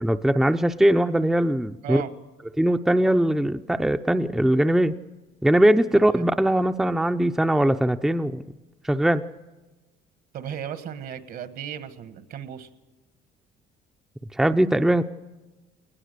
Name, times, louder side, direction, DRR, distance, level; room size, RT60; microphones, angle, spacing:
voice 1, 0.0-2.0 2.6-4.9 5.4-8.4 8.8-9.2 14.3-15.0, right 1 dB, 5° right, 8 dB, 0.6 m, -21 dB
voice 2, 1.8-2.1 5.9-6.3 10.3-12.7, right 9 dB, 65° right, 12 dB, 1.5 m, -35 dB
20.5 x 19.5 x 6.7 m, 1.2 s
cardioid pair, 110°, 17 cm